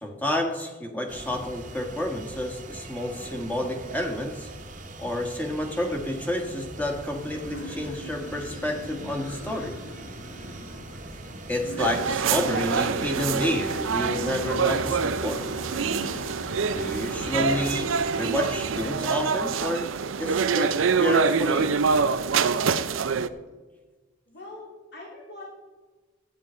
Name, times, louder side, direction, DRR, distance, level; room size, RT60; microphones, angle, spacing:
voice 1, 0.0-4.5 5.0-9.8 11.5-15.4 16.7-19.9 20.2-21.8, left 1 dB, 10° left, 2 dB, 1.4 m, -30 dB
sound 1, 1.1-19.0, right 2 dB, 40° right, 1.1 m, -41 dB
sound 2, 7.2-19.1, left 2 dB, 70° left, 1.1 m, -42 dB
sound 3, 11.8-23.3, right 5 dB, 80° right, 0.5 m, -25 dB
voice 2, 24.3-25.5, left 2 dB, 55° left, -4 dB, 3.3 m, -42 dB
13.5 x 9.6 x 4.3 m, 1.3 s
head